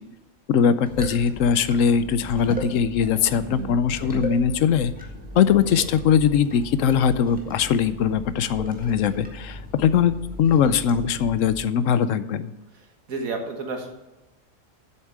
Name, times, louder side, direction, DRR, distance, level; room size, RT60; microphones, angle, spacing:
voice 1, 0.5-4.9 5.3-12.5, left 7 dB, 70° left, 14 dB, 0.9 m, -21 dB
sound 1, 0.8-11.7, equal, 5° right, 1.5 m, -37 dB
voice 2, 3.4-3.9 13.1-13.9, right 3 dB, 75° right, 4 dB, 2.0 m, -31 dB
8.3 x 7.3 x 7.4 m, 1.1 s
omnidirectional pair, 1.5 m